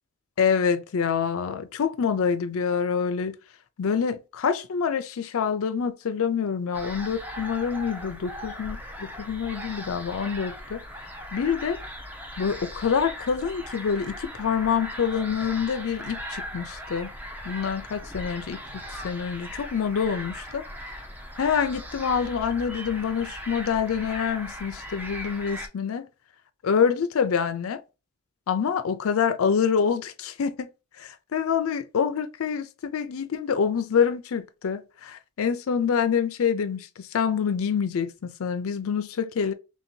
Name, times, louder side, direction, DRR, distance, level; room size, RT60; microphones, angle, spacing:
voice 1, 0.4-3.3 3.8-10.8 11.3-11.8 12.4-17.1 17.4-18.6 19.0-20.6 21.4-26.1 26.6-27.8 28.5-30.7 31.0-39.5, left 6 dB, 75° left, 0.4 m, -26 dB
sound 1, 6.7-25.7, equal, 10° right, 0.4 m, -39 dB
3.2 x 2.7 x 4.4 m
head